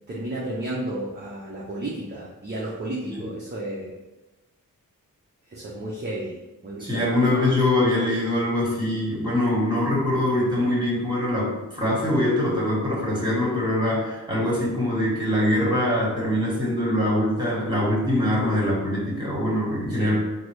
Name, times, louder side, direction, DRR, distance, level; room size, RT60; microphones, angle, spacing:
voice 1, 0.1-3.9 5.5-6.4 6.6-7.1 19.9-20.2, right 1 dB, 30° right, -5 dB, 0.6 m, -32 dB
voice 2, 6.8-20.2, left 1 dB, 15° right, -6 dB, 1.4 m, -23 dB
3.9 x 2.0 x 3.1 m, 1.1 s
wide cardioid pair, 70°, 34 cm